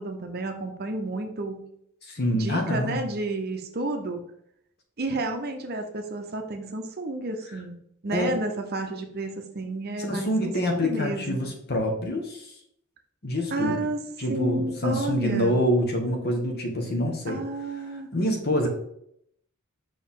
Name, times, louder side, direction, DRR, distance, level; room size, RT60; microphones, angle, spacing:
voice 1, 0.0-1.7 2.3-4.2 5.0-7.8 8.0-11.5 13.5-15.6 17.3-18.1, right 2 dB, 45° right, 5 dB, 0.7 m, -31 dB
voice 2, 2.0-3.0 8.1-8.4 10.0-12.4 13.2-13.9 14.2-17.4 18.1-18.7, equal, 45° left, 3 dB, 1.2 m, -26 dB
5.5 x 4.6 x 3.6 m, 0.72 s
head